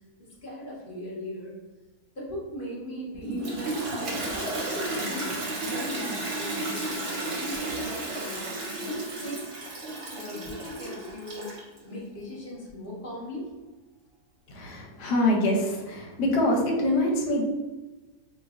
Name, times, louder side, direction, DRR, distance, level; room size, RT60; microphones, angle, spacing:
voice 1, 0.2-1.5 2.1-5.4 5.7-8.5 8.8-9.5 10.1-11.6 11.8-13.5, equal, 40° left, -5 dB, 0.9 m, -38 dB
Toilet flush, 3.2-11.8, right 2 dB, 50° right, 0.8 m, -33 dB
voice 2, 14.5-17.4, left 1 dB, 85° left, -1 dB, 1.3 m, -25 dB
4.2 x 2.5 x 2.4 m, 1.2 s
omnidirectional pair, 1.7 m